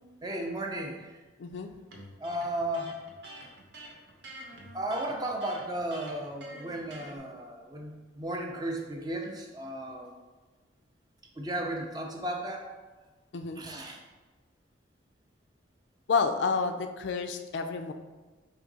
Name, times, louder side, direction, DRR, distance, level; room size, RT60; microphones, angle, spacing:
voice 1, 0.2-1.1 2.2-2.9 4.7-10.1 11.4-12.7 13.6-14.0, right 1 dB, 20° right, 1 dB, 0.4 m, -34 dB
voice 2, 1.4-1.7 13.3-13.6 16.1-17.9, left 5 dB, 65° left, 7 dB, 0.3 m, -29 dB
Electric guitar, 1.9-7.2, right 1 dB, 65° right, 0.9 m, -47 dB
4.8 x 2.7 x 3.9 m, 1.2 s
head